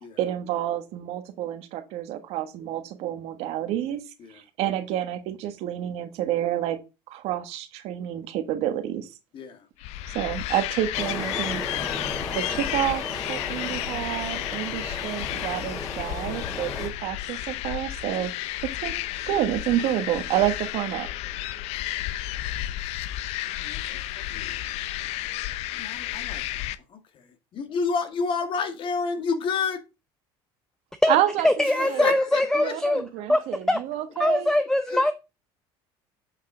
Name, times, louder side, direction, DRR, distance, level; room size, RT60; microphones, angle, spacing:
voice 1, 0.2-4.0 4.3-6.8 7.1-9.1 10.1-11.8 12.3-13.0 13.3-18.3 18.6-19.0 19.3-21.1 31.1-32.1 32.5-34.5, right 12 dB, 70° right, 1.4 m, -29 dB
voice 2, 9.3-9.7 23.4-24.0 24.3-24.6 25.7-29.8 31.7-32.7 34.9-35.1, left 5 dB, 50° left, 1.8 m, -30 dB
sound 1, 9.8-26.8, left 14 dB, 70° left, 0.6 m, -32 dB
sound 2, 10.9-16.9, left 3 dB, 35° left, 3.5 m, -35 dB
voice 3, 31.4-33.0 33.3-33.8 34.2-35.1, left 1 dB, 5° left, 0.7 m, -22 dB
8.2 x 5.5 x 3.8 m
supercardioid pair, 105°, 11 cm